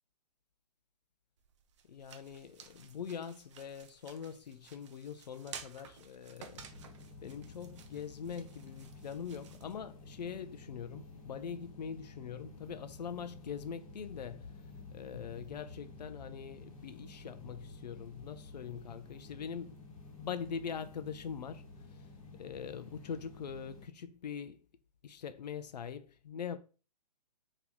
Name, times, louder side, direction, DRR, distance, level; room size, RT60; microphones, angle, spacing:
Sticks rustling, 1.4-10.4, right 7 dB, 45° right, 0.5 m, -54 dB
voice 1, 1.9-6.7 7.2-14.5 14.9-19.8 20.2-21.6 22.4-24.6 25.0-26.6, left 7 dB, 80° left, 0.5 m, -43 dB
sound 1, 6.5-23.9, left 3 dB, 55° left, 1.0 m, -52 dB
2.9 x 2.7 x 3.6 m
hypercardioid pair, 140°, 21 cm